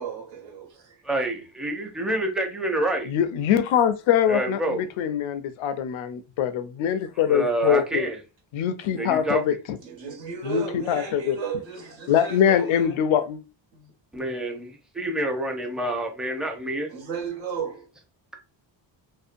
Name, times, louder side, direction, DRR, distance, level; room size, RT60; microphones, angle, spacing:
voice 1, 0.0-1.0 9.8-13.0 13.7-13.9 16.9-17.9, right 6 dB, 75° right, 1.2 m, -34 dB
voice 2, 1.0-3.1 4.3-4.9 7.2-8.2 9.0-9.4 14.1-16.9, right 1 dB, ahead, 0.5 m, -27 dB
voice 3, 3.1-8.1 8.5-9.8 10.4-11.4 12.1-13.4, left 9 dB, 85° left, 0.5 m, -23 dB
2.6 x 2.1 x 2.5 m
cardioid pair, 100°, 46 cm